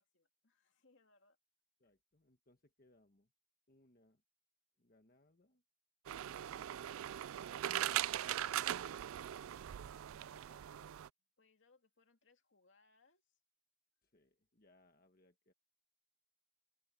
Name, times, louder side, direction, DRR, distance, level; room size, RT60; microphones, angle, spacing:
voice 1, 0.0-1.4 1.8-1.9 8.4-8.7 10.0-11.1 11.4-13.4, left 3 dB, 65° left, 2.5 m, -72 dB
voice 2, 1.8-3.3 3.7-4.2 4.8-5.6 6.1-6.8 14.0-15.5, left 1 dB, 45° left, 1.3 m, -71 dB
sound 1, 6.1-11.1, right 12 dB, 90° right, 0.3 m, -40 dB
head